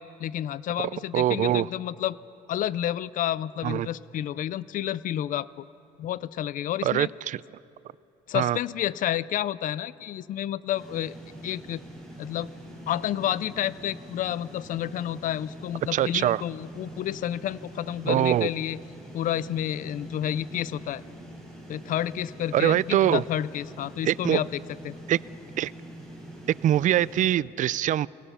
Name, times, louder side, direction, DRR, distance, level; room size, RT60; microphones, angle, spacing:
voice 1, 0.0-2.2 2.5-5.7 6.0-7.1 8.3-11.1 11.4-11.8 12.2-12.5 12.9-18.8 19.1-21.0 21.7-24.9, left 11 dB, 50° left, 19 dB, 0.5 m, -30 dB
voice 2, 0.8-1.7 3.6-3.9 6.8-7.4 8.3-8.6 15.9-16.4 18.1-18.5 22.5-23.2 24.0-24.4 25.1-25.2 25.6-25.7 26.6-28.1, right 12 dB, 50° right, 21 dB, 0.4 m, -23 dB
sound 1, 10.7-27.3, right 1 dB, 5° left, 7.0 m, -44 dB
29.0 x 18.5 x 5.6 m, 2.9 s
cardioid pair, 110°, 17 cm